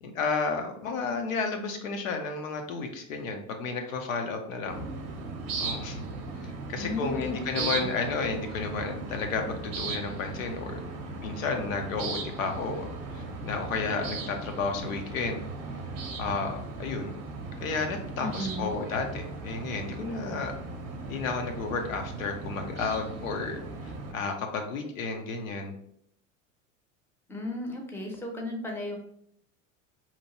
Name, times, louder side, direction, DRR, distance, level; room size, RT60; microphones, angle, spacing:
voice 1, 0.0-4.8 5.6-6.0 6.4-9.5 9.8-10.8 11.2-12.9 13.1-15.4 16.2-17.1 17.6-20.5 21.1-25.7, left 4 dB, 85° left, 4 dB, 0.7 m, -32 dB
sound 1, 4.7-24.1, right 3 dB, 40° right, 0.6 m, -37 dB
voice 2, 6.8-7.9 18.2-18.7 27.3-29.0, left 1 dB, 5° left, 1 dB, 0.6 m, -35 dB
2.9 x 2.2 x 2.8 m, 0.70 s
hypercardioid pair, 90°, 39 cm